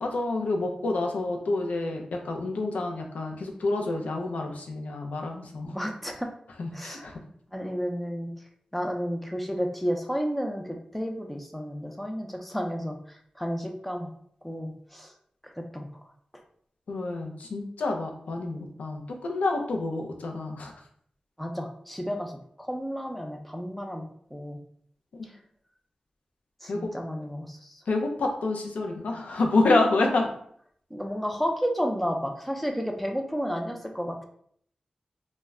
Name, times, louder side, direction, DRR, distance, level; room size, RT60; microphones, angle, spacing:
voice 1, 0.0-5.8 6.6-7.2 16.9-20.7 26.7-26.9 27.9-30.3, left 2 dB, 90° left, 2 dB, 0.4 m, -28 dB
voice 2, 5.6-6.3 6.7-7.1 7.5-8.3 8.7-10.6 10.9-13.0 13.4-14.1 14.4-15.1 15.6-15.9 21.4-22.3 22.6-24.1 24.3-24.6 26.6-27.8 30.9-34.2, equal, 5° left, 2 dB, 0.5 m, -31 dB
2.1 x 2.1 x 3.5 m, 0.64 s
cardioid pair, 50°, 2 cm